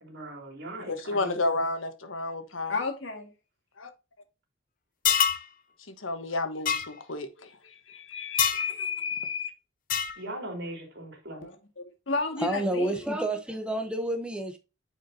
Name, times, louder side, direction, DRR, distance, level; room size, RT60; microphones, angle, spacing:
voice 1, 0.0-1.4 10.2-11.5, right 1 dB, 60° right, 2.9 m, -39 dB
voice 2, 0.9-2.7 3.8-3.9 5.9-7.5 7.9-9.5, left 3 dB, 90° left, 1.2 m, -31 dB
voice 3, 2.7-3.3 11.4-13.0, left 3 dB, 70° left, 1.9 m, -32 dB
sound 1, 5.0-5.4 6.7-6.9 8.4-8.7 9.9-10.2, left 8 dB, 45° left, 0.6 m, -25 dB
voice 4, 12.4-14.6, right 1 dB, 5° right, 0.8 m, -29 dB
9.1 x 4.9 x 2.7 m
head